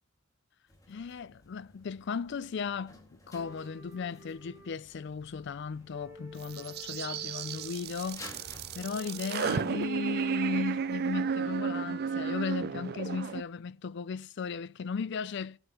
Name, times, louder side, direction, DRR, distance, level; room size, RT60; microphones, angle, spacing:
sound 1, 0.7-11.3, left 1 dB, 15° left, 2.1 m, -55 dB
voice 1, 0.9-3.0 3.3-15.6, left 5 dB, 60° left, 0.4 m, -36 dB
sound 2, 3.3-5.4 5.7-7.8 8.7-10.6 11.6-12.9, left 1 dB, 15° right, 2.0 m, -53 dB
sound 3, 6.4-13.4, right 6 dB, 50° right, 0.4 m, -33 dB
19.5 x 7.9 x 3.0 m
head